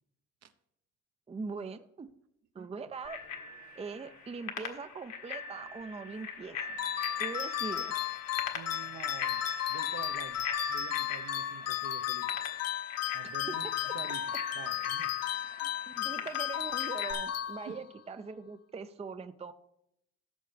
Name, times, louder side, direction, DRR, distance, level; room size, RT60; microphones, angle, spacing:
voice 1, 1.3-2.1 2.5-3.2 3.8-6.8 7.2-8.0 13.2-13.6 13.8-13.9 15.6-19.5, right 4 dB, 20° right, 10 dB, 0.5 m, -42 dB
Bicycle bell, 3.0-17.1, left 5 dB, 70° left, 1.7 m, -41 dB
sound 1, 6.8-18.0, left 12 dB, 55° left, 0.5 m, -34 dB
voice 2, 8.5-9.4 9.7-10.4 10.7-12.3 13.1-14.2 14.5-15.4 17.6-17.8, right 7 dB, 60° right, 9 dB, 0.9 m, -47 dB
17.0 x 6.7 x 3.4 m, 0.78 s
cardioid pair, 90°, 30 cm